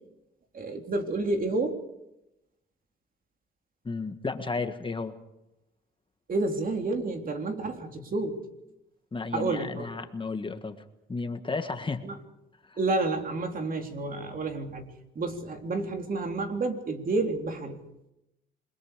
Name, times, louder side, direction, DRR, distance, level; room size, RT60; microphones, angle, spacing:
voice 1, 0.5-1.8 6.3-8.4 9.3-9.9 12.0-12.2 12.8-14.8 15.2-17.8, right 3 dB, 45° right, 4 dB, 3.6 m, -30 dB
voice 2, 3.8-5.1 9.1-10.8 11.1-12.0 12.6-12.8, left 4 dB, 25° left, 7 dB, 1.7 m, -33 dB
28.0 x 22.0 x 5.1 m, 0.88 s
cardioid pair, 90°, 20 cm